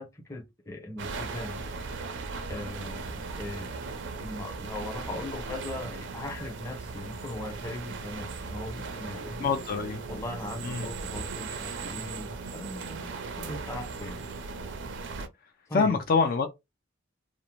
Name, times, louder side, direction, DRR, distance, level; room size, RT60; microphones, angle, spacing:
voice 1, 0.0-1.6 2.5-3.7 4.2-9.5 10.1-14.2 15.7-16.0, left 1 dB, 15° left, 0.7 m, -39 dB
sound 1, 1.0-15.3, right 4 dB, 65° right, 0.4 m, -38 dB
voice 2, 9.4-10.0 10.6-10.9 15.7-16.5, left 4 dB, 50° left, 0.4 m, -25 dB
2.6 x 2.0 x 2.9 m
head